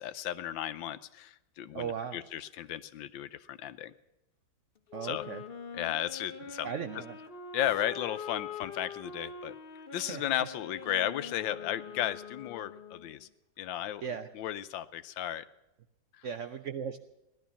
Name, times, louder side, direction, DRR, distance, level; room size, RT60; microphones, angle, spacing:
voice 1, 0.0-3.9 5.0-5.3 5.7-6.7 7.5-9.5 9.9-13.3 13.6-14.0 14.3-15.4 16.1-16.3, left 12 dB, 75° left, 13 dB, 1.4 m, -34 dB
voice 2, 1.7-2.2 4.9-5.4 6.6-7.2 10.1-10.2 14.0-14.3 16.2-17.0, right 7 dB, 85° right, 9 dB, 0.6 m, -37 dB
Wind instrument woodwind instrument, 4.9-13.2, left 5 dB, 35° left, 1.1 m, -44 dB
16.5 x 12.0 x 7.0 m, 0.93 s
omnidirectional pair, 2.2 m